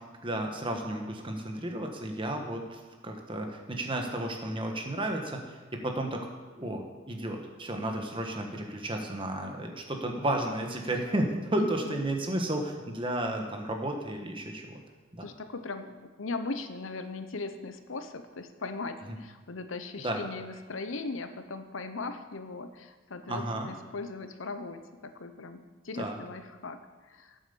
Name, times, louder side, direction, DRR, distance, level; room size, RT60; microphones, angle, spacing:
voice 1, 0.2-6.2 6.6-14.8 15.1-15.2 19.1-19.2 20.0-20.2 23.3-23.7 26.0-26.2, right 1 dB, 25° right, 3 dB, 1.3 m, -33 dB
voice 2, 11.6-12.0 15.2-27.4, left 3 dB, 80° left, 9 dB, 0.8 m, -39 dB
9.1 x 7.9 x 6.9 m, 1.3 s
head